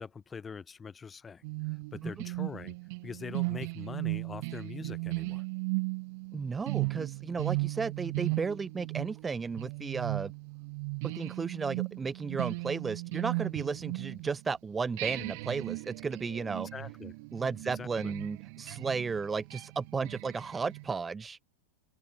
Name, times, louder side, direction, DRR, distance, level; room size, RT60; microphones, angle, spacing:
voice 1, 0.0-2.8 3.0-5.4 16.7-17.1 17.7-18.1, left 5 dB, 15° left, 2.7 m, -43 dB
sound 1, 1.4-14.5 15.0-20.9, right 28 dB, 45° right, 2.2 m, -36 dB
voice 2, 6.3-10.3 11.0-16.7 17.3-21.4, right 5 dB, 15° right, 1.0 m, -34 dB
open air
figure-of-eight pair, 90°, 0 cm